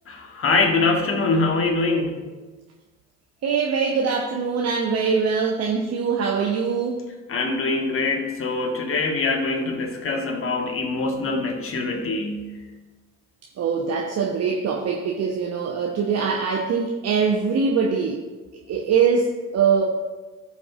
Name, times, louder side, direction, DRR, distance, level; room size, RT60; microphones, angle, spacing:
voice 1, 0.1-2.3 7.3-12.5, left 3 dB, 35° left, 4 dB, 1.5 m, -24 dB
voice 2, 3.4-7.0 13.6-18.3 18.7-19.8, right 5 dB, 40° right, 0 dB, 1.0 m, -23 dB
15.5 x 5.3 x 2.5 m, 1.3 s
figure-of-eight pair, 55°, 38 cm